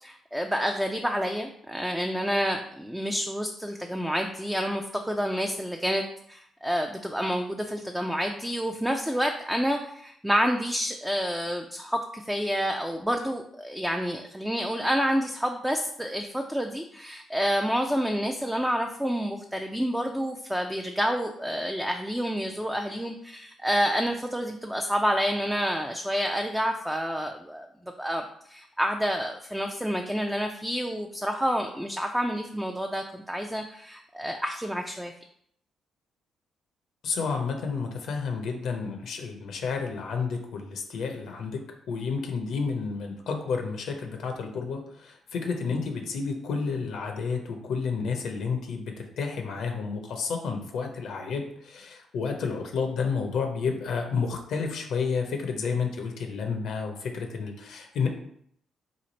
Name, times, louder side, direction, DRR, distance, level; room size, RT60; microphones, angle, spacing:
voice 1, 0.0-27.7 28.0-35.1, equal, 5° right, 3 dB, 0.4 m, -29 dB
voice 2, 37.0-41.6 41.9-58.1, left 5 dB, 70° left, 4 dB, 0.6 m, -30 dB
3.1 x 2.4 x 4.0 m, 0.68 s
hypercardioid pair, 50°, 0 cm